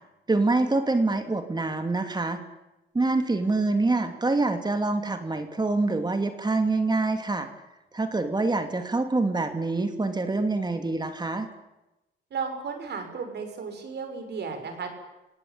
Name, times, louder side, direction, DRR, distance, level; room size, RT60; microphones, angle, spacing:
voice 1, 0.3-2.4 2.9-7.5 7.9-11.5, right 3 dB, 20° right, 7 dB, 2.6 m, -25 dB
voice 2, 12.3-14.9, right 5 dB, 60° right, 6 dB, 6.3 m, -34 dB
28.5 x 17.5 x 8.6 m, 0.97 s
cardioid pair, 90°, 20 cm